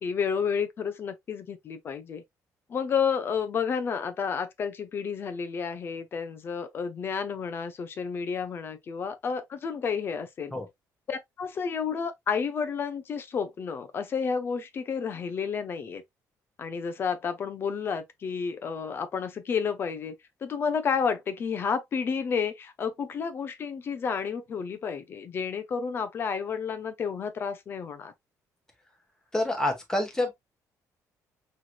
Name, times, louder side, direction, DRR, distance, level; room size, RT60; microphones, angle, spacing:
voice 1, 0.0-2.2 2.7-10.5 11.1-16.0 16.6-20.1 20.4-28.1, left 6 dB, 35° left, 0.6 m, -31 dB
voice 2, 29.3-30.3, left 1 dB, 10° left, 1.2 m, -27 dB
5.8 x 3.2 x 2.3 m
cardioid pair, 175°, 7 cm